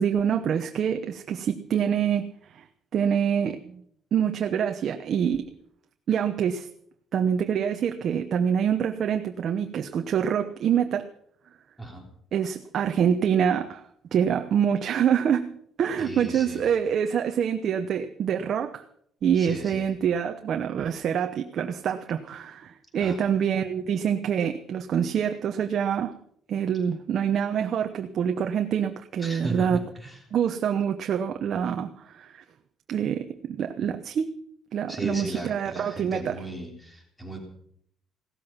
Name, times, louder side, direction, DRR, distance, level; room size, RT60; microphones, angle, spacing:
voice 1, 0.0-2.2 2.5-2.6 2.9-3.8 4.1-5.5 6.1-6.7 7.1-11.1 12.3-15.5 15.8-18.8 19.2-26.1 26.5-29.8 30.3-32.4 32.9-34.3 34.7-36.4, right 8 dB, 50° right, 6 dB, 0.9 m, -26 dB
voice 2, 11.8-12.1 16.0-16.6 19.3-19.9 23.0-23.2 29.2-30.2 34.9-37.4, right 1 dB, 5° left, 2 dB, 3.4 m, -36 dB
16.5 x 13.5 x 5.8 m, 0.67 s
cardioid pair, 150°, 0 cm